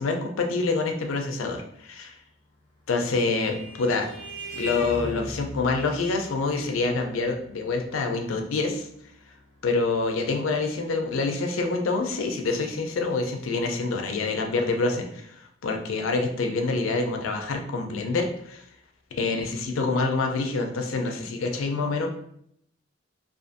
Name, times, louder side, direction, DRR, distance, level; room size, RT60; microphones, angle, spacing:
voice 1, 0.0-2.1 2.9-4.1 4.5-8.9 9.6-18.6 19.1-22.1, left 3 dB, 85° left, 4 dB, 0.4 m, -26 dB
Vehicle horn car horn honking, 2.6-11.6, equal, 35° left, 0.5 m, -41 dB
2.5 x 2.4 x 2.5 m, 0.71 s
head